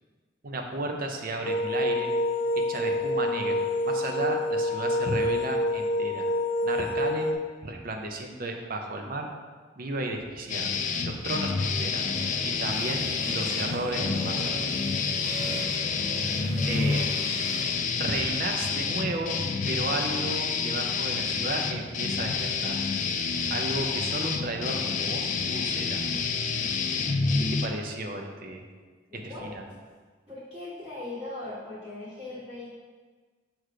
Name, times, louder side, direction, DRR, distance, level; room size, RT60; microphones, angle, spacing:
voice 1, 0.4-2.1 2.5-6.3 6.6-7.3 7.6-9.3 9.8-10.8 11.0-12.1 12.4-14.6 16.7-17.2 18.0-19.4 19.7-22.8 23.5-26.0 27.4-28.6 29.1-29.6, right 2 dB, 50° right, 3 dB, 0.7 m, -33 dB
sound 1, 1.4-7.3, left 1 dB, 70° left, 0.9 m, -27 dB
sound 2, 10.5-27.7, left 5 dB, 40° left, 0.4 m, -28 dB
sound 3, 12.0-17.7, equal, 10° right, 1.9 m, -38 dB
voice 2, 16.3-17.0 29.1-29.5 30.3-32.7, left 2 dB, 30° right, -13 dB, 1.7 m, -39 dB
6.5 x 3.1 x 4.9 m, 1.5 s
head